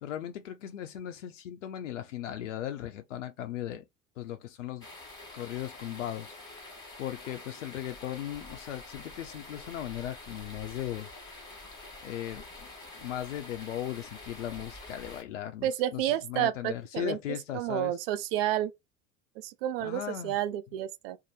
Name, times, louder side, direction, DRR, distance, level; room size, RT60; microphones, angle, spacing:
voice 1, 0.0-3.8 4.2-4.9 5.3-6.7 7.0-11.5 12.0-12.7 12.9-17.9 19.8-20.3, left 12 dB, 70° left, 0.5 m, -38 dB
sound 1, 4.8-15.2, left 2 dB, 10° left, 1.3 m, -47 dB
voice 2, 15.6-17.2 17.5-18.7 19.4-21.2, right 12 dB, 50° right, 0.4 m, -30 dB
2.6 x 2.0 x 3.0 m
figure-of-eight pair, 75°, 39 cm